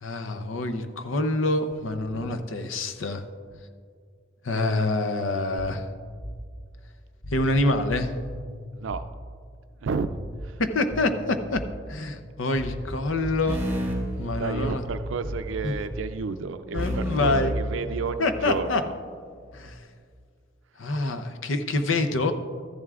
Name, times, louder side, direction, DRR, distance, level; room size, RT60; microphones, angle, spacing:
voice 1, 0.0-3.2 4.4-5.9 7.3-8.1 10.6-13.6 14.2-14.8 15.6-15.7 16.7-17.5 18.2-18.8 19.5-19.8 20.8-22.3, left 2 dB, 80° left, 8 dB, 0.7 m, -26 dB
sound 1, 5.6-6.5 7.2-9.1 9.9-10.6 10.9-11.9 12.5-16.2, equal, 25° left, 0.5 m, -37 dB
voice 2, 8.7-9.1 9.8-10.1 10.4-10.6 14.4-18.9, right 4 dB, 75° right, 10 dB, 0.4 m, -31 dB
sound 2, 13.5-15.1 16.8-18.5, equal, 10° right, 2.3 m, -31 dB
14.0 x 11.0 x 2.4 m, 2.1 s
head